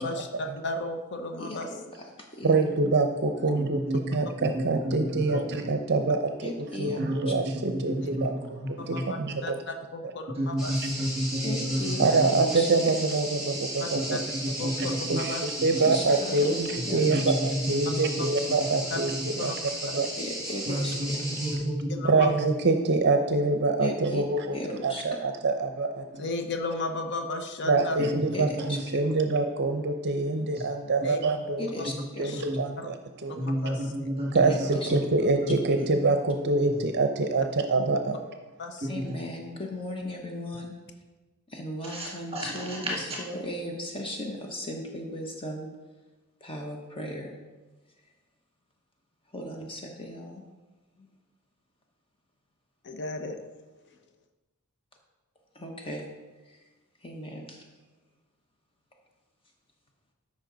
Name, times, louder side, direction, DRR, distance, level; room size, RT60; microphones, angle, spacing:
voice 1, 0.0-1.7 3.4-3.5 5.3-5.4 8.0-8.1 8.8-11.1 13.8-14.2 14.6-15.4 17.1-17.2 18.2-18.3 18.9-19.0 19.4-19.5 21.5-21.6 21.9-22.3 26.1-28.0 31.0-31.2 31.8-31.9 32.2-32.4 32.8-32.9 33.4-33.9 38.6-38.9 52.8-53.4, left 2 dB, 50° left, 5 dB, 0.8 m, -35 dB
voice 2, 1.4-2.5 6.4-7.3 8.8-8.9 11.4-12.0 12.5-12.7 15.8-16.5 16.8-17.0 20.2-21.2 23.8-24.2 24.5-25.0 28.0-29.1 31.6-32.4 34.5-34.9 35.8-35.9 38.9-40.7 41.5-45.7 46.4-47.3 49.3-50.4 55.5-56.0 56.5-56.6 57.0-57.6, left 1 dB, 25° left, 1 dB, 1.0 m, -37 dB
voice 3, 2.4-3.8 4.1-6.5 6.8-8.3 8.7-9.5 12.0-14.2 14.6-14.7 15.1-19.1 19.4-19.5 19.9-20.1 22.0-26.0 27.6-31.6 32.2-32.9 33.2-33.3 34.3-38.2, right 3 dB, 50° right, 6 dB, 0.6 m, -25 dB
voice 4, 3.6-4.2 4.4-5.4 7.0-8.3 8.6-9.0 10.4-12.3 13.9-14.0 14.4-15.0 15.9-16.0 16.8-18.3 19.2-19.3 20.7-22.0 22.3-22.4 28.1-28.8 32.5-32.6 33.4-34.6 34.9-35.0 35.4-35.5 38.8-39.2 41.8-42.9, equal, 25° right, -4 dB, 1.8 m, -31 dB
sound 1, 10.6-21.6, right 1 dB, ahead, 3.3 m, -35 dB
13.0 x 5.6 x 3.9 m, 1.2 s
head